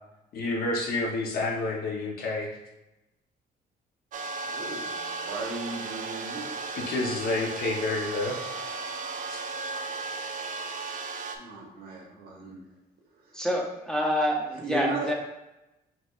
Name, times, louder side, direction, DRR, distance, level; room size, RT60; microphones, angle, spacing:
voice 1, 0.3-2.5 6.7-8.4, left 2 dB, 55° left, -2 dB, 1.1 m, -29 dB
sound 1, 4.1-11.4, right 3 dB, 50° right, 0.4 m, -35 dB
voice 2, 4.4-6.5 11.3-12.6 13.2-13.4 14.5-15.1, right 3 dB, 65° right, -1 dB, 1.3 m, -36 dB
voice 3, 13.3-15.1, equal, 5° left, -2 dB, 0.7 m, -27 dB
5.9 x 3.1 x 2.6 m, 0.95 s
cardioid pair, 150°, 18 cm